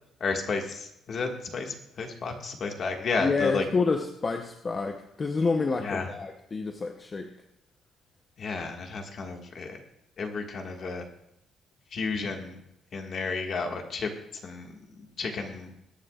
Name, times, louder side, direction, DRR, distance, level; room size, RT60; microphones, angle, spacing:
voice 1, 0.2-3.6 5.8-6.1 8.4-9.8 10.2-11.0 11.9-12.6 12.9-14.1 14.4-15.7, left 4 dB, 40° left, 3 dB, 1.7 m, -32 dB
voice 2, 3.2-7.3, left 4 dB, 25° left, 4 dB, 0.8 m, -28 dB
21.5 x 9.7 x 2.4 m, 0.81 s
cardioid pair, 155°, 0 cm